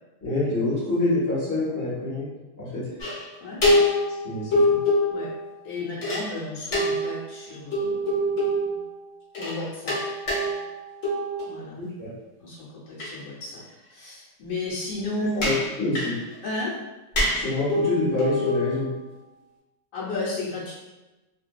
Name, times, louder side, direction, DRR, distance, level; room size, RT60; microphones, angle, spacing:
voice 1, 0.2-2.3 2.6-2.8 4.2-4.8 11.7-12.1 15.2-16.2 17.3-18.9, left 2 dB, 15° left, -9 dB, 0.7 m, -26 dB
sound 1, 3.0-3.3 3.6-5.5 6.0-6.3 6.7-9.0 9.4-9.6 9.9-11.6 13.0-13.1 15.4-16.3 17.2-19.0, left 1 dB, 55° left, 1.0 m, -24 dB
voice 2, 5.6-8.9 9.3-10.0 11.5-11.8 12.4-13.6 13.9-15.5 16.4-16.8 19.9-20.7, left 2 dB, 70° left, -8 dB, 1.3 m, -33 dB
2.6 x 2.5 x 2.2 m, 1.1 s
omnidirectional pair, 1.8 m